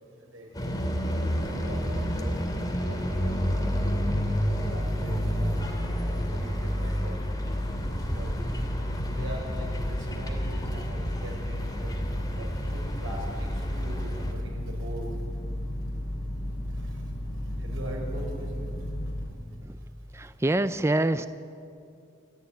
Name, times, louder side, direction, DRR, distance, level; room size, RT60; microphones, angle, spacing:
voice 1, 0.3-0.7 1.5-3.7 4.0-4.2 4.4-5.6 6.1-7.1 7.9-8.3 9.1-11.6 11.8-11.9 12.3-15.1 16.7-16.8 17.6-18.7, right 1 dB, 85° right, 0 dB, 6.4 m, -42 dB
sound 1, 0.5-14.3, equal, 20° left, 2.7 m, -31 dB
sound 2, 3.1-19.2, left 1 dB, 50° left, 6.0 m, -33 dB
voice 2, 20.1-21.3, right 1 dB, 15° right, 11 dB, 0.5 m, -25 dB
28.0 x 14.0 x 9.4 m, 2.5 s
head